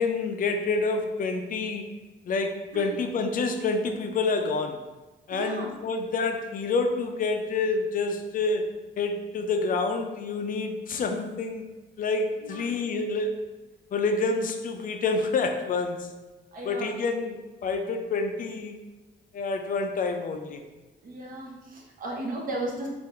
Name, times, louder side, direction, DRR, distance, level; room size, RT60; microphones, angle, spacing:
voice 1, 0.0-1.9 2.3-4.8 5.3-8.6 9.0-11.6 12.0-13.3 13.9-16.1 16.6-18.8 19.3-20.6, left 3 dB, 45° left, 5 dB, 0.4 m, -28 dB
voice 2, 5.3-5.7 12.4-12.6 16.5-17.0 21.0-22.9, right 1 dB, 45° right, -2 dB, 0.7 m, -35 dB
3.7 x 2.5 x 4.3 m, 1.2 s
wide cardioid pair, 175°, 19 cm